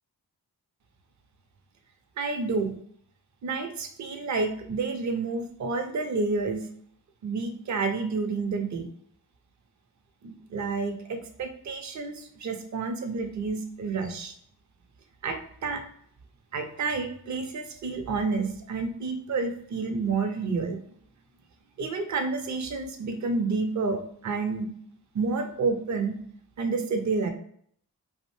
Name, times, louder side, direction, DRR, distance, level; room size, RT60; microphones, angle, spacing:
voice 1, 2.2-2.7 3.4-6.7 7.2-8.9 10.2-14.3 15.2-15.8 16.5-20.8 21.8-24.7 25.1-26.2 26.6-27.3, right 4 dB, 45° right, 6 dB, 0.5 m, -29 dB
2.5 x 2.1 x 3.0 m, 0.64 s
cardioid pair, 45°, 40 cm